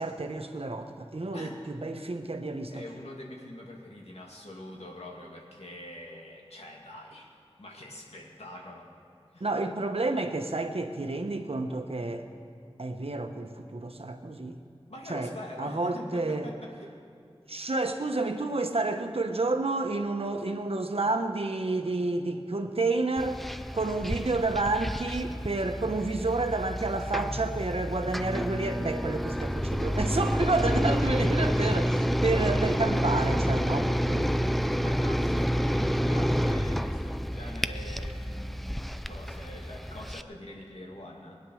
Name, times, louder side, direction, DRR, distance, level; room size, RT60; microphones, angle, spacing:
voice 1, 0.0-2.8 9.4-12.3 12.8-14.6 15.1-15.3 15.6-16.5 17.5-23.4 23.7-34.6, right 2 dB, 70° right, 6 dB, 1.1 m, -30 dB
voice 2, 2.7-7.3 7.6-8.9 9.3-9.5 14.9-17.0 34.8-41.4, left 1 dB, 90° left, -1 dB, 2.3 m, -44 dB
sound 1, 23.2-40.2, equal, ahead, 0.4 m, -29 dB
20.5 x 9.7 x 6.4 m, 2.5 s
wide cardioid pair, 50°, 10 cm